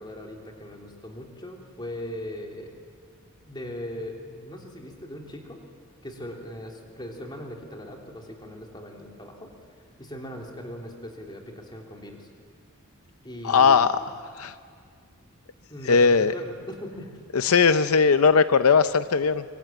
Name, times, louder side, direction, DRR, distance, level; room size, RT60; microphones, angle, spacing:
voice 1, 0.0-2.7 3.5-5.6 6.0-9.5 10.0-12.3 13.2-13.9 15.7-17.1, left 1 dB, 20° left, 1 dB, 3.4 m, -39 dB
voice 2, 13.4-14.0 14.4-14.5 15.9-16.3 17.3-19.4, left 5 dB, 80° left, 12 dB, 0.6 m, -19 dB
25.0 x 24.5 x 9.2 m, 2.1 s
head